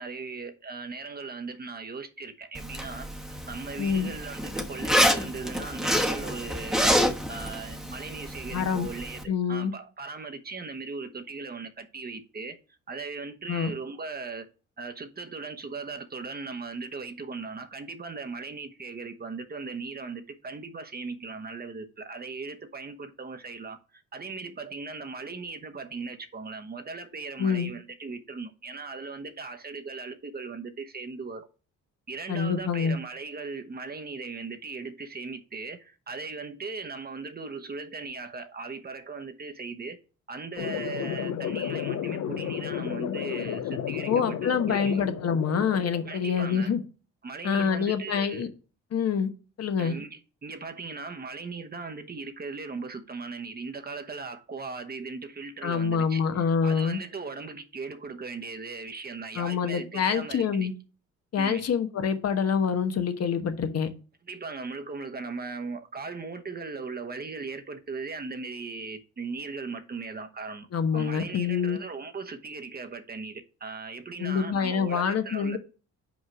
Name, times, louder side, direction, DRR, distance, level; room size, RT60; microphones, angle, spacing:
voice 1, 0.0-7.0 7.3-12.6 12.9-14.5 14.8-31.5 32.1-40.0 40.3-45.0 46.1-46.7 47.2-48.5 49.8-60.7 61.4-61.7 64.3-70.7 70.9-75.6, right 4 dB, 30° right, 1.0 m, -38 dB
Zipper (clothing), 2.5-9.2, equal, ahead, 1.1 m, -28 dB
voice 2, 3.8-4.1 8.5-8.9 9.3-9.7 13.5-13.7 27.4-27.7 32.3-33.0 44.1-46.8 47.4-48.5 48.9-49.3 49.6-49.9 55.6-57.0 59.3-60.7 61.3-63.9 70.7-71.8 74.2-75.6, left 6 dB, 55° left, 1.1 m, -26 dB
sound 1, 40.6-46.6, left 9 dB, 75° left, 0.9 m, -33 dB
5.3 x 4.8 x 6.0 m
cardioid pair, 90°, 30 cm